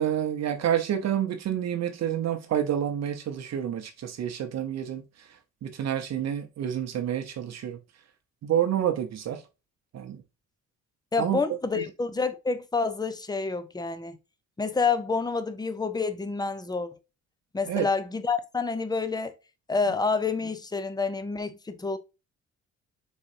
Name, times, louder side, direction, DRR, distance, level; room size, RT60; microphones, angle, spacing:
voice 1, 0.0-5.0 5.6-7.8 8.4-9.4 9.9-10.2 11.2-11.4 11.7-11.8 17.7-17.9, right 10 dB, 60° right, 0.8 m, -28 dB
voice 2, 11.1-14.2 14.6-16.9 17.5-19.3 19.7-22.0, left 4 dB, 15° left, 0.7 m, -28 dB
4.1 x 3.9 x 2.6 m
cardioid pair, 90°, 30 cm